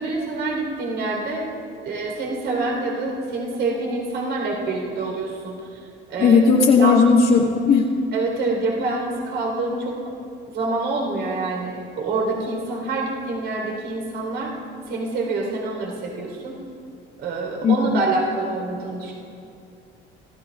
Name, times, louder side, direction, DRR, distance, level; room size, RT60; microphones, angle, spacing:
voice 1, 0.0-1.4 1.9-5.8 6.1-6.4 6.8-7.1 8.1-10.1 10.5-14.5 14.9-16.6 17.2-19.1, right 3 dB, 60° right, -1 dB, 3.9 m, -26 dB
voice 2, 6.2-7.9 17.6-18.0, left 5 dB, 45° left, -4 dB, 1.5 m, -16 dB
24.5 x 14.5 x 2.4 m, 2.6 s
cardioid pair, 125°, 21 cm